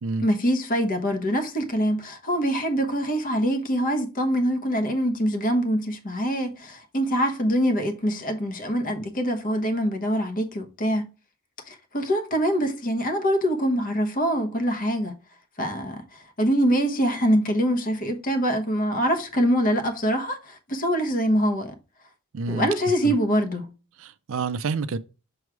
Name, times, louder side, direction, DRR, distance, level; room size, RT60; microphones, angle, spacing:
voice 1, 0.2-11.1 11.7-15.2 15.6-21.7 22.5-23.7, equal, 40° left, 1.1 m, -24 dB
voice 2, 22.3-22.7 24.0-25.0, right 4 dB, 65° right, 0.5 m, -28 dB
6.3 x 3.2 x 4.7 m
head